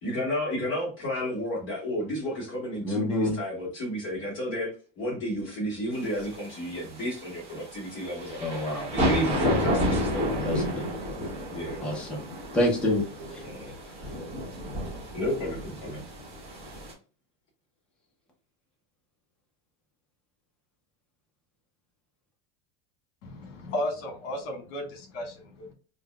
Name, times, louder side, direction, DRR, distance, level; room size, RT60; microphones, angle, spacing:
voice 1, 0.0-4.7 5.0-10.5 11.5-11.8 13.4-13.7 15.1-16.1, equal, 35° left, -5 dB, 1.1 m, -32 dB
voice 2, 2.8-3.4 8.4-8.9 10.4-10.8 11.8-12.2 12.5-13.0 13.3-13.4, left 1 dB, 5° left, -2 dB, 0.4 m, -27 dB
sound 1, 6.0-16.9, equal, 15° right, 1.0 m, -31 dB
voice 3, 23.2-25.7, left 1 dB, 75° left, 3 dB, 1.6 m, -34 dB
5.1 x 2.1 x 2.2 m, 0.36 s
cardioid pair, 175°, 35 cm